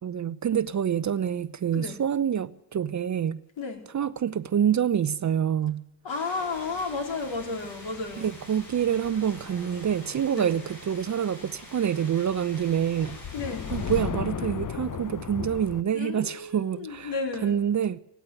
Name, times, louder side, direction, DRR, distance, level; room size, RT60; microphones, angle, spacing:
voice 1, 0.0-3.4 3.9-5.8 8.2-13.2 13.7-17.1 17.4-18.0, right 9 dB, 35° right, 0.8 m, -26 dB
voice 2, 6.0-8.3 10.3-10.5 13.3-13.8 15.9-17.6, left 4 dB, 60° left, 4.4 m, -33 dB
sound 1, 6.1-14.0, left 1 dB, 90° left, 5.7 m, -46 dB
sound 2, 6.6-11.1 11.4-11.6 12.0-15.8, left 8 dB, 40° left, 1.1 m, -37 dB
17.5 x 16.0 x 9.4 m
hypercardioid pair, 45°, 49 cm